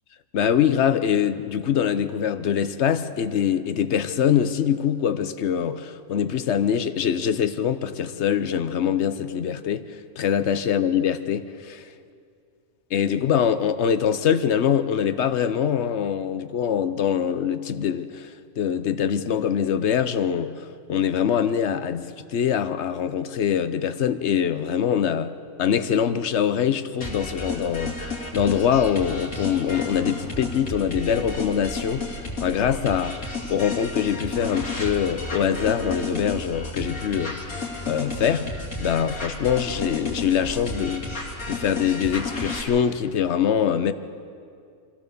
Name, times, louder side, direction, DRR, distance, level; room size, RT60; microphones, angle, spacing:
voice 1, 0.3-9.8 10.2-11.8 12.9-20.5 20.9-25.3 25.6-37.4 37.9-38.5 38.8-41.2 41.5-43.9, left 8 dB, 60° left, 11 dB, 1.0 m, -23 dB
sound 1, 27.0-42.6, left 2 dB, 90° left, 3.3 m, -32 dB
24.0 x 16.5 x 6.9 m, 2.3 s
omnidirectional pair, 1.4 m